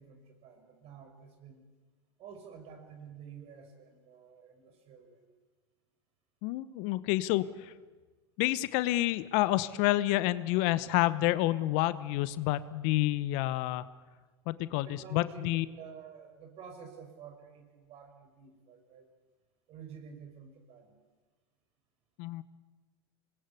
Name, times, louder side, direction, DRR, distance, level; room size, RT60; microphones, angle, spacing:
voice 1, 0.0-1.7 2.2-5.2 14.7-19.1 19.7-20.9, right 6 dB, 50° right, 6 dB, 5.7 m, -50 dB
voice 2, 6.4-7.7 8.4-13.8 14.5-15.6 22.2-22.4, left 17 dB, 60° left, 16 dB, 1.0 m, -29 dB
25.5 x 20.5 x 8.5 m, 1.3 s
hypercardioid pair, 85°, 13 cm